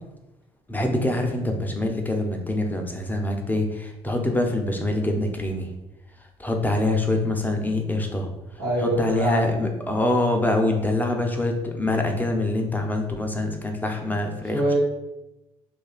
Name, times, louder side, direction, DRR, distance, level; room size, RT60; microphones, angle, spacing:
voice 1, 0.7-5.7 6.4-8.3 8.8-14.6, left 2 dB, 15° left, 3 dB, 0.5 m, -25 dB
voice 2, 8.6-9.5 14.5-14.8, right 1 dB, 85° right, -6 dB, 1.3 m, -24 dB
2.7 x 2.3 x 2.4 m, 0.94 s
hypercardioid pair, 60°, 14 cm